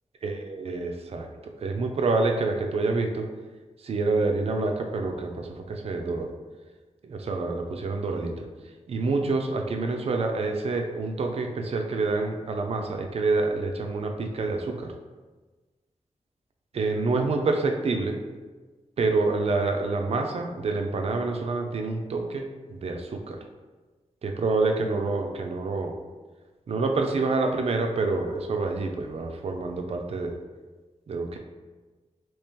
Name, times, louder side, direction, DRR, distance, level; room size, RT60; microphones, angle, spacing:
voice 1, 0.2-3.3 3.8-6.3 7.0-8.5 8.9-14.9 16.7-18.2 19.0-23.4 24.2-26.0 26.7-30.4 31.1-31.4, right 3 dB, 55° right, 4 dB, 0.4 m, -27 dB
2.9 x 2.8 x 3.6 m, 1.3 s
wide cardioid pair, 160°, 12 cm